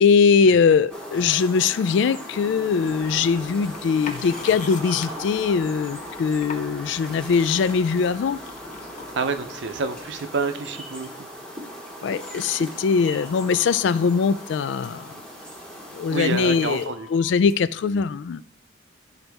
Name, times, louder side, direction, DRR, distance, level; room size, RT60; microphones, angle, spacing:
voice 1, 0.0-8.4 12.0-15.1 15.9-18.4, left 5 dB, 65° left, 16 dB, 0.3 m, -21 dB
sound 1, 0.9-16.9, equal, 5° left, 1.1 m, -38 dB
sound 2, 2.8-10.2, left 4 dB, 40° left, 0.7 m, -42 dB
voice 2, 9.1-11.1 16.1-17.1, right 4 dB, 65° right, 9 dB, 0.6 m, -27 dB
sound 3, 12.0-12.7 14.8-14.9 16.9-17.5, left 3 dB, 85° left, 2.3 m, -45 dB
12.0 x 4.1 x 3.4 m, 0.62 s
head